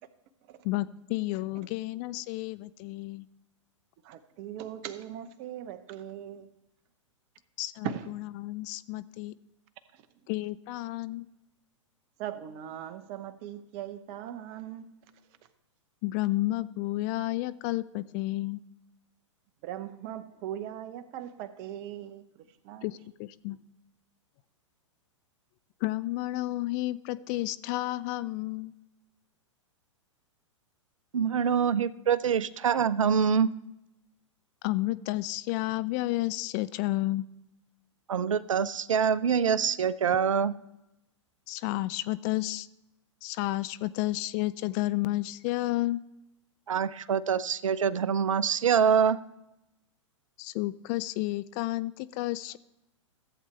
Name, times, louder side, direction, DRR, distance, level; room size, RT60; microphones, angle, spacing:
voice 1, 0.6-3.3 7.6-9.3 10.3-11.3 16.0-18.6 22.8-23.6 25.8-28.7 34.6-37.2 41.5-42.7 43.2-46.0 50.4-52.6, left 18 dB, 35° left, 0.4 m, -31 dB
voice 2, 4.0-6.5 7.8-8.1 12.2-14.9 19.6-22.2 22.6-22.8, right 11 dB, 40° right, 0.8 m, -39 dB
voice 3, 31.1-33.5 38.1-40.5 46.7-49.2, right 7 dB, 80° right, 0.4 m, -25 dB
14.5 x 8.0 x 3.2 m
hypercardioid pair, 110°, 16 cm